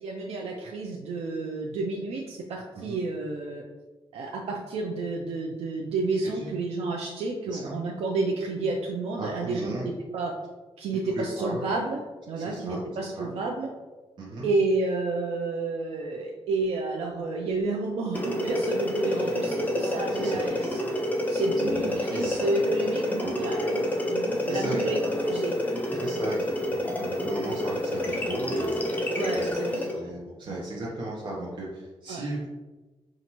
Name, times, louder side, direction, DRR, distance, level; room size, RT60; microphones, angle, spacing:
voice 1, 0.0-3.6 4.1-10.3 10.8-12.0 12.3-13.7 14.4-20.8 21.3-23.8 24.1-25.5 29.1-30.1 30.4-30.6 32.1-32.2, right 3 dB, 85° right, -1 dB, 0.5 m, -30 dB
voice 2, 9.2-9.9 10.9-11.6 12.4-12.8 13.2-13.3 14.2-14.5 20.1-20.5 21.6-22.4 23.2-23.3 24.0-24.2 24.5-24.9 26.0-28.7 29.3-32.5, right 1 dB, 45° right, -6 dB, 0.7 m, -36 dB
sound 1, 18.1-30.0, left 1 dB, 15° left, 0.6 m, -28 dB
5.4 x 2.4 x 2.9 m, 1.2 s
wide cardioid pair, 140°, 10 cm